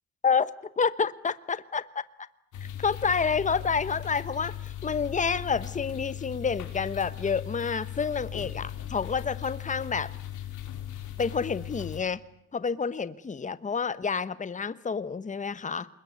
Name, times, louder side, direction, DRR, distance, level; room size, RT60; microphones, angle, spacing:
voice 1, 0.8-2.0 2.8-10.1 11.2-12.2 12.5-15.9, left 5 dB, 25° left, 15 dB, 1.1 m, -29 dB
sound 1, 2.5-12.0, left 11 dB, 80° left, 4.4 m, -38 dB
26.0 x 22.0 x 9.6 m, 0.72 s
cardioid pair, 90°, 30 cm